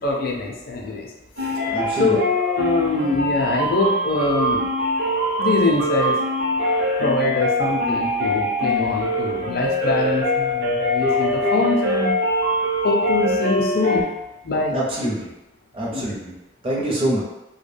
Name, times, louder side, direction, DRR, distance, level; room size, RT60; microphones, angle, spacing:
voice 1, 0.0-1.1 2.0-4.7 5.4-6.2 7.0-12.1 12.8-14.1 14.4-14.7 15.9-16.1, left 2 dB, 50° left, 0 dB, 0.4 m, -23 dB
sound 1, 1.4-14.0, left 1 dB, 65° right, 0.7 m, -23 dB
voice 2, 1.7-2.2 14.7-15.3 15.7-16.3 16.6-17.2, right 1 dB, 30° right, -5 dB, 0.6 m, -25 dB
2.2 x 2.2 x 3.3 m, 0.97 s
head